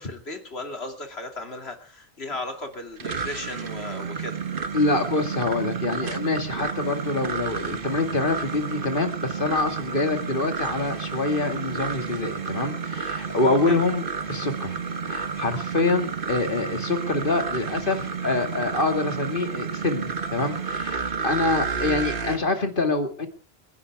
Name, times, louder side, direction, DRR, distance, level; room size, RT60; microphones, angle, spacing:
voice 1, 0.0-4.4 13.7-13.8 20.2-20.3, left 2 dB, 85° left, 5 dB, 3.0 m, -36 dB
sound 1, 2.7-22.4, right 5 dB, 60° right, 1.3 m, -31 dB
voice 2, 4.7-23.3, left 3 dB, 55° left, 6 dB, 2.5 m, -26 dB
29.5 x 11.5 x 3.6 m, 0.37 s
omnidirectional pair, 1.0 m